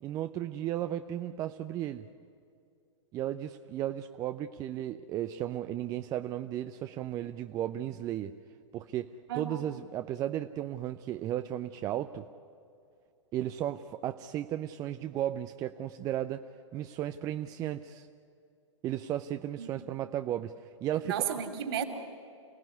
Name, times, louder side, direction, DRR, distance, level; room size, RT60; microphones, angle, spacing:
voice 1, 0.0-2.1 3.1-8.3 8.7-12.3 13.3-16.5 16.7-18.1 18.8-20.5 20.8-21.2, right 12 dB, 20° right, 9 dB, 0.6 m, -34 dB
voice 2, 9.3-9.6 19.6-19.8 21.0-21.8, right 9 dB, 50° right, 7 dB, 3.0 m, -33 dB
28.5 x 17.5 x 9.8 m, 2.4 s
figure-of-eight pair, 110°, 16 cm